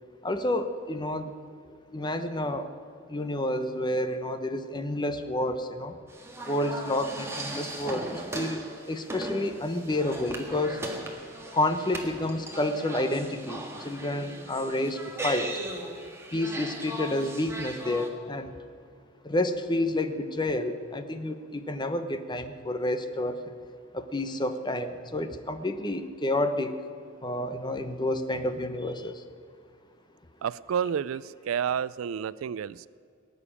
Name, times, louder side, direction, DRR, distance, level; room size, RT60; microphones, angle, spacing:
voice 1, 0.2-1.3 1.9-2.7 3.1-6.0 6.5-10.8 11.5-15.5 16.3-18.5 19.2-23.4 23.9-26.8 27.2-29.2, left 1 dB, 20° left, 9 dB, 0.9 m, -29 dB
sound 1, 6.1-18.1, right 1 dB, 15° right, 1.7 m, -38 dB
voice 2, 30.4-32.9, right 8 dB, 75° right, 19 dB, 0.4 m, -30 dB
19.0 x 6.8 x 9.9 m, 2.2 s
head